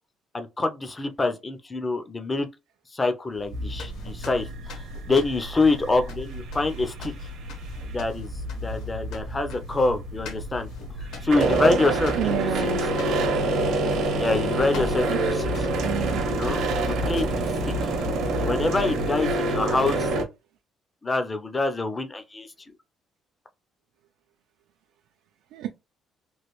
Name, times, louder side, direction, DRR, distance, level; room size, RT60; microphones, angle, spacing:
voice 1, 0.3-2.5 2.9-7.3 7.9-10.7 11.0-12.3 12.6-12.9 14.2-15.7 16.3-17.4 17.8-17.9 18.4-20.1 21.0-22.5, left 3 dB, 15° left, 0.4 m, -26 dB
sound 1, 3.3-18.4, left 1 dB, 75° left, 0.9 m, -41 dB
sound 2, 3.5-20.3, right 2 dB, 60° right, 0.7 m, -27 dB
voice 2, 12.2-12.8 15.1-15.4 15.8-16.3 25.5-25.7, right 10 dB, 85° right, 0.4 m, -29 dB
3.0 x 2.4 x 3.0 m
cardioid pair, 175°, 0 cm